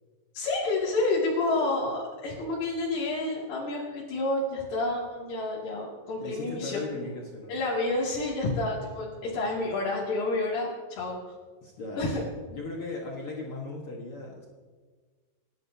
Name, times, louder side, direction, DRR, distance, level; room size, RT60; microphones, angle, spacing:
voice 1, 0.3-7.1 7.5-11.3 12.0-12.2, left 2 dB, 80° left, -7 dB, 4.2 m, -29 dB
voice 2, 6.2-7.5 11.6-12.1 12.5-14.5, left 2 dB, 50° left, -2 dB, 1.8 m, -37 dB
28.0 x 12.0 x 2.8 m, 1.5 s
omnidirectional pair, 4.0 m